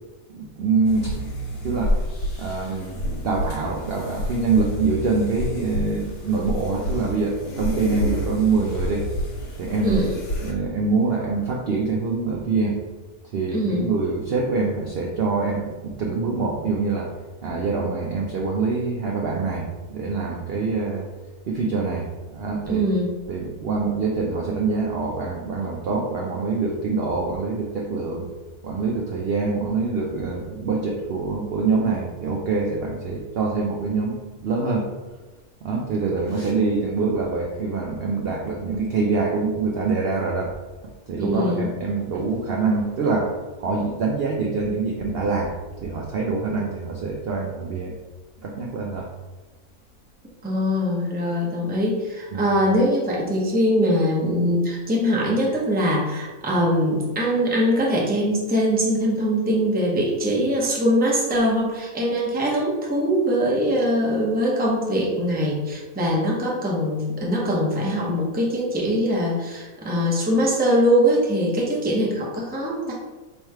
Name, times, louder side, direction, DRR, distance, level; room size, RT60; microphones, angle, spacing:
voice 1, 0.3-2.0 2.4-9.0 9.6-10.0 10.4-12.8 13.3-17.1 17.4-21.1 21.5-22.8 23.3-28.3 28.6-34.9 35.6-40.5 41.1-43.3 43.6-47.9 48.4-49.1 52.3-52.4, right 4 dB, 65° right, -1 dB, 0.6 m, -25 dB
sound 1, 0.8-10.5, left 1 dB, 85° left, 1.4 m, -29 dB
voice 2, 13.5-13.9 22.7-23.1 41.2-41.7 50.4-72.9, equal, 10° right, -4 dB, 0.5 m, -22 dB
3.1 x 3.1 x 4.6 m, 1.2 s
omnidirectional pair, 1.6 m